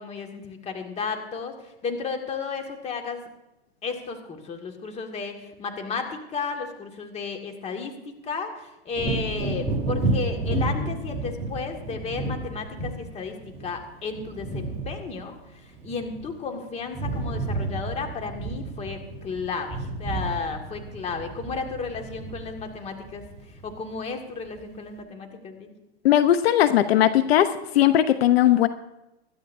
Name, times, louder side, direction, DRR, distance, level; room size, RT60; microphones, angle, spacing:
voice 1, 0.0-3.3 3.8-23.2 23.6-25.7, left 5 dB, 20° left, 4 dB, 2.0 m, -33 dB
Wind / Thunder, 8.9-16.5 16.8-24.0 24.4-24.6, right 2 dB, 20° right, 3.7 m, -31 dB
voice 2, 26.0-28.7, left 12 dB, 70° left, 11 dB, 0.9 m, -19 dB
25.5 x 12.0 x 2.7 m, 0.94 s
hypercardioid pair, 135°, 32 cm